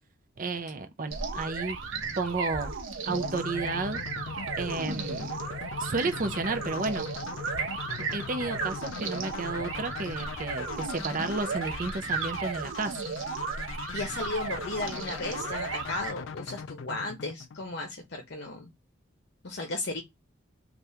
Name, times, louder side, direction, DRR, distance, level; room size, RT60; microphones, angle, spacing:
voice 1, 0.4-1.8 2.2-2.8 3.1-4.0 4.6-5.3 5.8-7.1 8.1-13.0, right 3 dB, 45° right, 0.6 m, -32 dB
sound 1, 1.1-16.1, right 4 dB, 85° right, 0.9 m, -35 dB
sound 2, 3.1-18.0, left 6 dB, 75° left, 0.4 m, -40 dB
voice 2, 13.9-18.7 19.4-20.0, left 2 dB, 55° left, 0.8 m, -35 dB
3.4 x 2.4 x 2.7 m
head